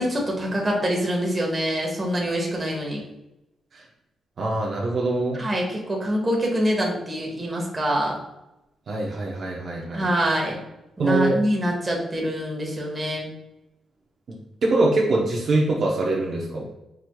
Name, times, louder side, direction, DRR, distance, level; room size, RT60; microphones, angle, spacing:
voice 1, 0.0-3.0 5.4-8.1 9.9-10.6 11.0-13.3, equal, 15° right, -1 dB, 1.1 m, -25 dB
voice 2, 4.4-5.4 8.9-10.1 11.0-11.4 14.3-14.4 14.6-16.6, right 2 dB, 40° right, -2 dB, 0.7 m, -23 dB
5.1 x 4.5 x 2.2 m, 0.93 s
wide cardioid pair, 165°, 0 cm